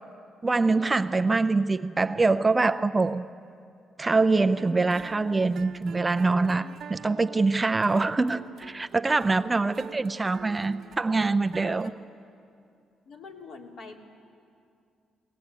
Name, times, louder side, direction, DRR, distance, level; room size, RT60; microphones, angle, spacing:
voice 1, 0.4-3.3 4.0-11.9, right 3 dB, 20° right, 10 dB, 0.5 m, -24 dB
sound 1, 4.6-11.9, right 7 dB, 65° right, 1.1 m, -46 dB
voice 2, 13.0-14.0, left 4 dB, 70° left, 0 dB, 2.8 m, -45 dB
20.5 x 19.0 x 8.2 m, 2.4 s
cardioid pair, 90°, 0 cm